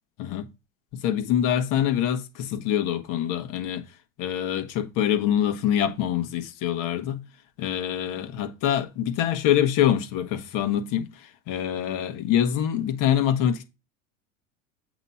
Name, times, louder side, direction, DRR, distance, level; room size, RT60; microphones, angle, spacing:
voice 1, 0.2-0.5 0.9-3.8 4.2-7.2 7.6-13.7, left 10 dB, 55° left, 1.4 m, -25 dB
8.0 x 3.1 x 5.7 m
hypercardioid pair, 85°, 39 cm